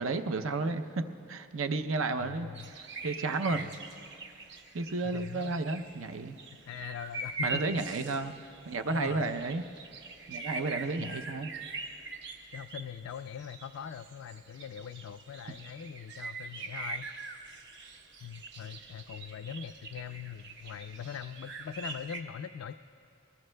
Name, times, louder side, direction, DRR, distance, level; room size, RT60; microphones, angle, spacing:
voice 1, 0.0-2.5 2.7-3.7 4.7-6.4 7.4-8.3 8.7-9.6 10.3-11.5, right 3 dB, 75° right, 8 dB, 0.6 m, -32 dB
voice 2, 2.2-2.7 5.0-5.6 6.7-8.1 8.9-9.3 11.0-11.1 12.5-17.1 18.2-22.7, left 8 dB, 75° left, 8 dB, 0.3 m, -42 dB
sound 1, 2.5-22.2, right 3 dB, 60° right, 0.9 m, -43 dB
22.5 x 20.0 x 2.2 m, 2.6 s
head